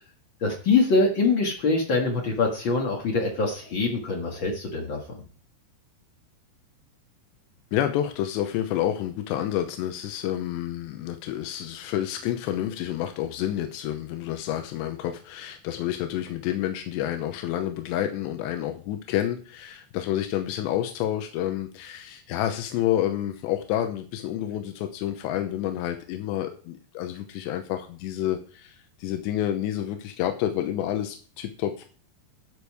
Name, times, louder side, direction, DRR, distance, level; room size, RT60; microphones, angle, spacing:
voice 1, 0.4-5.2, left 3 dB, 60° left, 1 dB, 1.2 m, -24 dB
voice 2, 7.7-31.9, left 12 dB, 85° left, 6 dB, 3.1 m, -29 dB
13.0 x 7.2 x 4.8 m, 0.41 s
omnidirectional pair, 5.0 m